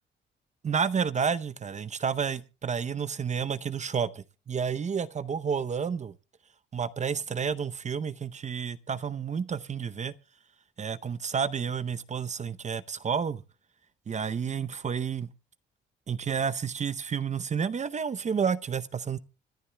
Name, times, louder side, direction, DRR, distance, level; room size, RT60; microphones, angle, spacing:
voice 1, 0.6-6.1 6.7-10.1 10.8-13.4 14.1-15.3 16.1-19.2, right 6 dB, 35° right, 0.7 m, -30 dB
26.5 x 11.0 x 2.2 m
cardioid pair, 90°, 20 cm